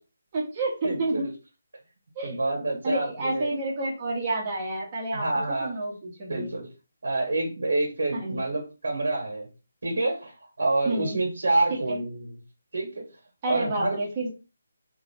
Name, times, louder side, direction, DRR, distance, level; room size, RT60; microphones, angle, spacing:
voice 1, 0.3-1.2 2.1-2.4 2.8-6.5 8.1-8.4 10.8-11.2 11.7-12.0 13.4-14.3, right 2 dB, 30° right, -2 dB, 1.5 m, -29 dB
voice 2, 0.8-1.3 2.2-3.5 5.1-5.7 6.3-6.7 7.0-9.5 9.8-12.4 12.7-13.0 13.5-14.0, right 2 dB, 75° right, -1 dB, 1.9 m, -27 dB
3.6 x 3.0 x 3.5 m, 0.31 s
hypercardioid pair, 165°, 0 cm